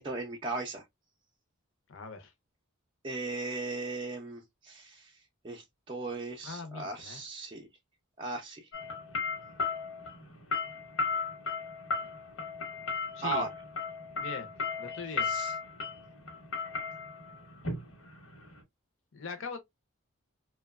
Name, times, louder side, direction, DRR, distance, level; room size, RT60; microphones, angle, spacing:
voice 1, 0.0-0.8 3.0-5.1 5.4-7.7 8.2-8.7 13.2-13.5 15.3-15.5, right 3 dB, 25° right, 0.4 m, -37 dB
voice 2, 1.9-2.3 6.4-7.2 13.1-13.5 14.2-14.5 14.8-15.4 19.1-19.6, left 4 dB, 60° left, 0.6 m, -41 dB
sound 1, 8.7-18.6, left 4 dB, 85° left, 1.0 m, -35 dB
2.8 x 2.2 x 2.2 m
head